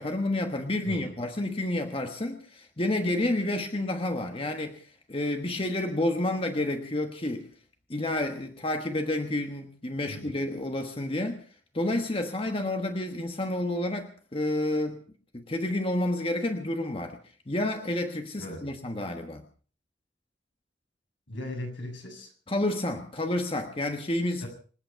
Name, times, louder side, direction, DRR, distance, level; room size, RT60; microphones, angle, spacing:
voice 1, 0.0-7.5 7.9-11.4 11.7-15.0 15.3-17.2 17.5-19.4 22.5-24.4, left 1 dB, 30° left, 5 dB, 1.3 m, -30 dB
voice 2, 21.3-22.3 24.4-24.5, left 1 dB, 80° left, 1 dB, 7.5 m, -38 dB
26.5 x 9.1 x 5.8 m, 0.42 s
head